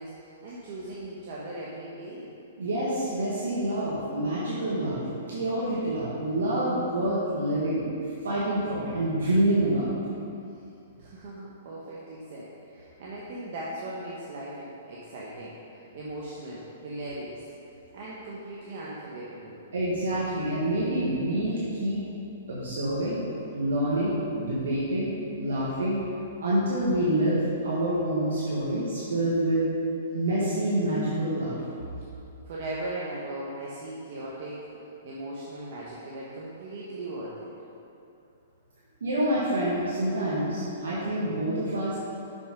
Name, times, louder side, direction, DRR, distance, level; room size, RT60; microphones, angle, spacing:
voice 1, 0.0-2.3 11.0-17.4 17.9-19.6 32.5-34.7 35.0-37.5, right 1 dB, 55° right, -6 dB, 1.2 m, -38 dB
voice 2, 2.6-5.0 5.3-7.9 8.2-9.9 19.7-22.0 22.5-23.3 23.5-26.0 26.4-29.6 30.1-31.6 39.0-42.0, right 1 dB, 85° right, -8 dB, 1.7 m, -27 dB
6.2 x 6.1 x 5.2 m, 2.7 s
hypercardioid pair, 140°, 0 cm